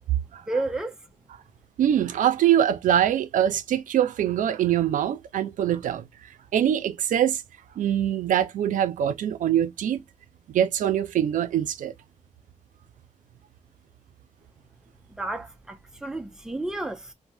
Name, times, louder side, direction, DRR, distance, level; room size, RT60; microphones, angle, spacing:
voice 1, 0.5-1.0 15.2-17.1, right 2 dB, 5° right, 0.5 m, -31 dB
voice 2, 1.8-6.0 6.5-7.4 7.8-10.0 10.5-11.9, right 10 dB, 85° right, 0.4 m, -23 dB
3.2 x 2.1 x 2.6 m
cardioid pair, 105°, 13 cm